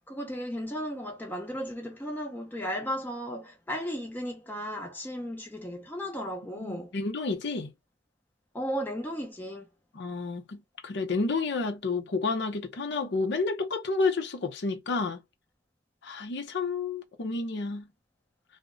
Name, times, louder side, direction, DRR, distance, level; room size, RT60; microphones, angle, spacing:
voice 1, 0.1-6.9 8.5-9.7, equal, 10° left, 0.4 m, -35 dB
voice 2, 6.5-7.7 10.0-15.2 16.0-17.9, left 3 dB, 65° left, 0.6 m, -30 dB
2.1 x 2.0 x 3.5 m
head